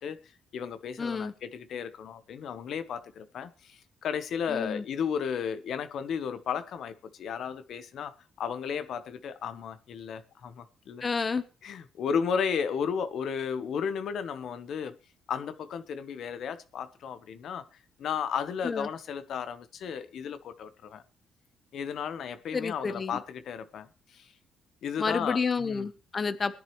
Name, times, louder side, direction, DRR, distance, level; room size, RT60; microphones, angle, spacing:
voice 1, 0.0-11.0 11.6-15.0 15.3-17.7 18.0-21.0 21.7-24.3 24.8-25.9, left 7 dB, 70° left, 1.0 m, -34 dB
voice 2, 1.0-1.3 4.5-4.8 11.0-11.4 18.6-18.9 22.5-23.2 25.0-26.6, left 5 dB, 35° left, 0.9 m, -30 dB
19.5 x 10.0 x 3.1 m
cardioid pair, 90°, 0 cm